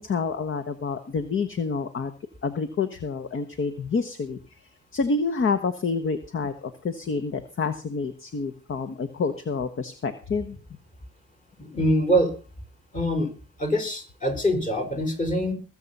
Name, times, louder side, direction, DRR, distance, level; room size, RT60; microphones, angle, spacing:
voice 1, 0.0-2.1 2.4-4.4 4.9-10.6, left 4 dB, 45° left, 11 dB, 1.3 m, -28 dB
voice 2, 11.6-12.3 12.9-13.3 13.6-15.5, equal, 25° left, 7 dB, 4.5 m, -24 dB
20.0 x 7.5 x 5.5 m, 0.36 s
cardioid pair, 90°, 30 cm